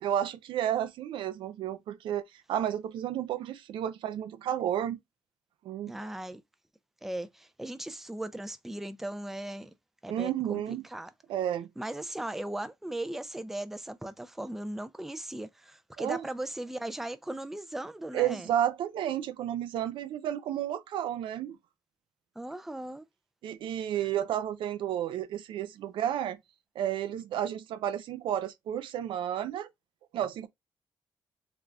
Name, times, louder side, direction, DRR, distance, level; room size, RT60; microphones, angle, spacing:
voice 1, 0.0-5.0 5.6-6.1 10.1-10.8 11.3-11.7 16.0-16.3 18.1-21.6 23.4-26.4 26.8-29.7 30.1-30.5, right 10 dB, 90° right, 0.5 m, -32 dB
voice 2, 5.9-6.4 7.0-9.7 10.0-11.1 11.8-18.5 22.4-23.0, right 1 dB, 5° right, 0.4 m, -38 dB
3.7 x 3.3 x 2.2 m
cardioid pair, 135°, 8 cm